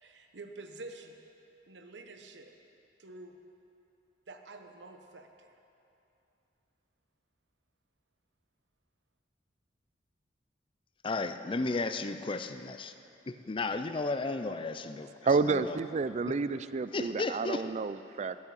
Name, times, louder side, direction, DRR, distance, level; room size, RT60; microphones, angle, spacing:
voice 1, 0.0-1.2 1.7-2.5 3.0-3.4 4.3-5.5, right 2 dB, 75° right, 5 dB, 1.0 m, -48 dB
voice 2, 11.0-12.9 13.3-15.1 15.5-15.8 16.9-17.6, left 3 dB, 30° left, 10 dB, 0.5 m, -33 dB
voice 3, 15.2-18.4, right 4 dB, 40° right, 14 dB, 0.4 m, -30 dB
11.0 x 8.4 x 8.5 m, 2.8 s
head